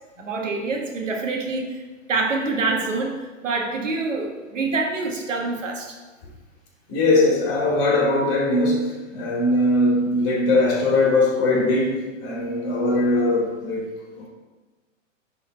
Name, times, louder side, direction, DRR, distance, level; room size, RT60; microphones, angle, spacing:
voice 1, 0.2-1.8 2.1-6.0, right 3 dB, 70° right, 1 dB, 1.4 m, -26 dB
voice 2, 6.9-13.8 14.2-14.3, left 2 dB, 35° left, -2 dB, 2.6 m, -20 dB
10.0 x 3.9 x 4.3 m, 1.3 s
figure-of-eight pair, 115°, 39 cm